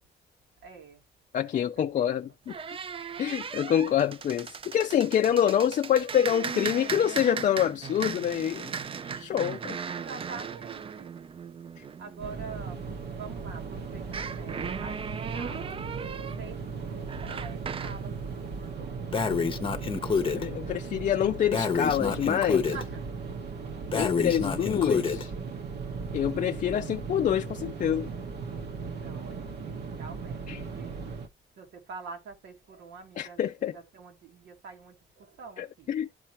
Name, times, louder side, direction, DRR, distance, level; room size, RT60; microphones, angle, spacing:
voice 1, 0.6-1.0 1.5-2.1 9.8-11.1 12.0-12.8 13.1-15.8 16.4-19.3 22.5-23.4 28.9-30.5 30.7-30.9 31.6-33.4 33.7-36.1, right 5 dB, 90° right, 2.1 m, -46 dB
voice 2, 1.3-2.5 3.2-8.7 9.0-9.8 20.3-22.6 23.9-25.3 26.1-28.1 30.5-30.6 33.2-33.7 35.6-36.1, left 10 dB, 45° left, 0.4 m, -26 dB
sound 1, 2.5-12.9 14.0-18.0, right 6 dB, 30° right, 0.4 m, -37 dB
sound 2, 12.2-31.3, right 5 dB, 65° right, 1.2 m, -37 dB
Breathing, 19.1-20.4 21.5-22.8 23.9-25.2, left 5 dB, 30° left, 0.8 m, -28 dB
12.0 x 4.4 x 2.9 m
cardioid pair, 130°, 18 cm